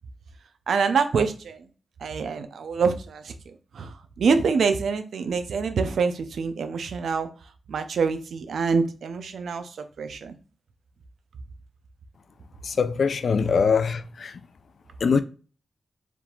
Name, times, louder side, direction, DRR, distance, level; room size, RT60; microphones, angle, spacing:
voice 1, 0.7-1.6 2.0-7.3 7.7-10.4, right 5 dB, 85° right, 0.6 m, -26 dB
voice 2, 12.6-14.4 15.0-15.2, left 5 dB, 55° left, 0.4 m, -23 dB
4.6 x 3.6 x 2.4 m
wide cardioid pair, 160°, 0 cm